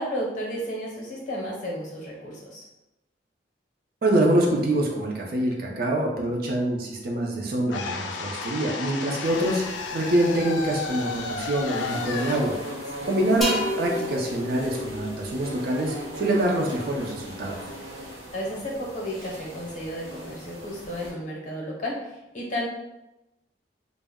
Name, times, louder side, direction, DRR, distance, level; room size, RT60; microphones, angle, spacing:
voice 1, 0.0-2.6 12.9-13.1 18.3-22.7, equal, 40° left, -2 dB, 0.7 m, -33 dB
voice 2, 4.0-9.6 9.9-12.5 13.0-17.6, right 1 dB, 55° right, -1 dB, 0.5 m, -25 dB
sound 1, 7.7-13.8, left 4 dB, 75° left, 0.3 m, -33 dB
sound 2, 9.2-21.1, equal, 75° right, 0.9 m, -39 dB
sound 3, 13.4-17.0, left 1 dB, ahead, 0.6 m, -32 dB
2.1 x 2.0 x 3.5 m, 0.93 s
head